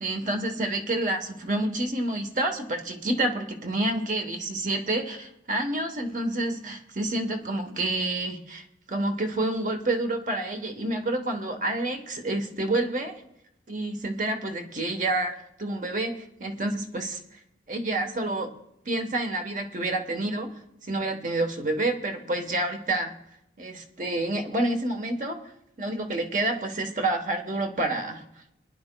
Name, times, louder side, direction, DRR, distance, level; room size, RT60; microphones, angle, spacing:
voice 1, 0.0-13.1 13.7-17.2 17.7-18.5 18.8-20.5 20.8-23.1 23.6-25.4 25.8-28.2, right 2 dB, 45° right, 5 dB, 1.1 m, -28 dB
22.5 x 10.0 x 2.2 m, 0.83 s
head